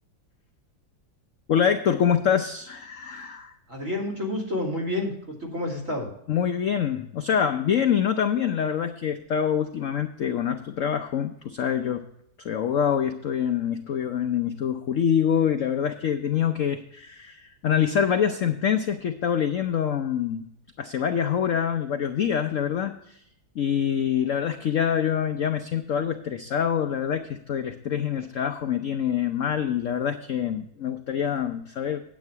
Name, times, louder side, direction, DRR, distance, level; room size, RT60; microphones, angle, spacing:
voice 1, 1.5-3.5 6.3-12.0 12.4-20.4 20.8-23.2 23.5-32.0, left 8 dB, 65° left, 7 dB, 0.8 m, -25 dB
voice 2, 3.7-6.1, left 1 dB, 40° right, 1 dB, 3.0 m, -29 dB
9.5 x 8.7 x 4.6 m, 0.74 s
omnidirectional pair, 2.1 m